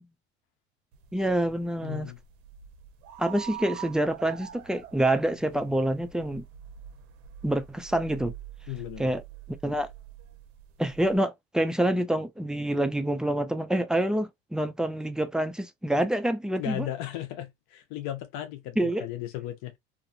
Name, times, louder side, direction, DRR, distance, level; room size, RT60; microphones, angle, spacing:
sound 1, 0.9-11.2, right 10 dB, 65° right, 0.7 m, -45 dB
voice 1, 1.1-2.1 3.2-6.4 7.4-8.3 9.0-9.2 9.6-9.9 10.8-16.9 18.8-19.1, right 1 dB, ahead, 0.3 m, -27 dB
voice 2, 1.8-2.2 8.7-9.2 16.6-19.8, left 13 dB, 70° left, 0.7 m, -36 dB
2.5 x 2.5 x 2.5 m
supercardioid pair, 100°, 31 cm